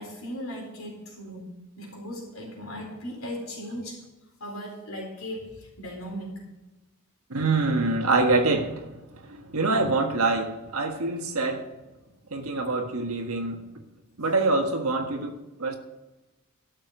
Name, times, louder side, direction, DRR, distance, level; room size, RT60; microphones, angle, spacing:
voice 1, 0.0-4.0 4.4-6.4, equal, 70° left, 4.4 m, -37 dB
voice 2, 7.3-11.7 12.3-13.6 14.2-15.8, right 3 dB, 85° right, 1.5 m, -25 dB
12.5 x 6.5 x 6.3 m
head